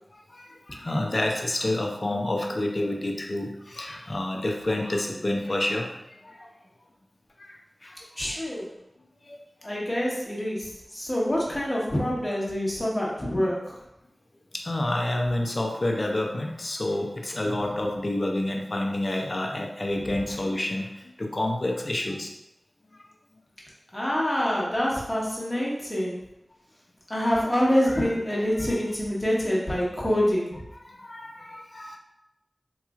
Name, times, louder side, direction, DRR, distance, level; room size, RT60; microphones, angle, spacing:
voice 1, 0.3-5.9 7.4-7.6 7.8-7.9 9.3-9.4 14.5-20.9 21.2-22.3 30.9-32.0, left 1 dB, 45° left, 1 dB, 0.6 m, -28 dB
voice 2, 8.2-8.7 9.6-13.8 23.9-26.2 27.1-30.7, equal, 25° left, -5 dB, 1.2 m, -26 dB
3.9 x 2.9 x 2.4 m, 0.86 s
wide cardioid pair, 50°, 0 cm